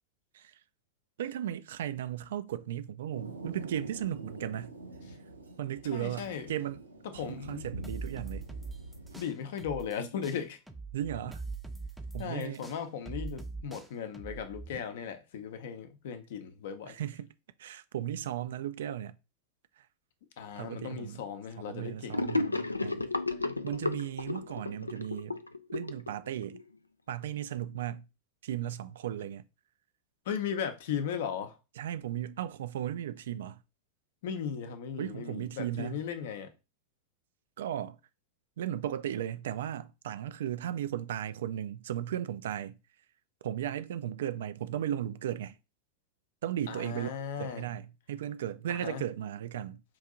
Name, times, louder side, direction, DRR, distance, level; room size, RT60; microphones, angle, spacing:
voice 1, 1.2-4.7 5.6-6.8 7.1-8.5 10.9-11.4 12.1-12.6 16.9-17.3 17.6-19.2 19.8-19.9 20.6-21.2 21.7-23.1 23.6-25.4 25.7-26.6 27.1-28.1 28.4-29.4 31.8-33.6 35.0-36.0 37.6-38.0 38.6-42.8 43.4-45.6 46.4-49.8, right 11 dB, 60° right, 0.3 m, -36 dB
Thunder, 3.1-9.2, right 2 dB, 80° right, 0.8 m, -46 dB
voice 2, 5.9-6.5 7.2-7.7 9.2-10.6 12.2-17.0 20.4-22.2 30.3-31.6 34.2-36.5 46.7-47.6 48.7-49.0, left 7 dB, 55° left, 0.7 m, -37 dB
sound 1, 7.8-10.0 10.2-14.8, right 3 dB, 5° right, 0.6 m, -42 dB
Gurgling / Sink (filling or washing), 22.1-26.6, left 3 dB, 80° left, 0.3 m, -33 dB
4.6 x 2.7 x 3.7 m
figure-of-eight pair, 90°, 0 cm